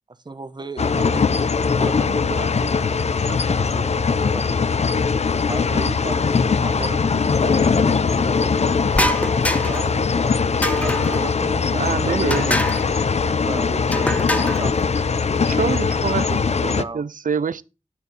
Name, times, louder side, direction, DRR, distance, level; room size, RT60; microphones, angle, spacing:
voice 1, 0.1-1.3 1.8-4.7 5.4-9.1 9.4-10.0 10.8-12.5 13.0-15.6 16.7-17.0, right 3 dB, 35° right, 1.2 m, -35 dB
sound 1, 0.8-16.8, left 5 dB, 55° left, 0.6 m, -21 dB
sound 2, 8.9-9.9 10.6-11.2 12.3-12.9 13.9-14.6, equal, 10° left, 0.9 m, -24 dB
voice 2, 11.8-12.6 15.4-17.6, right 6 dB, 85° right, 0.6 m, -25 dB
11.0 x 6.5 x 4.4 m
wide cardioid pair, 95°, 13 cm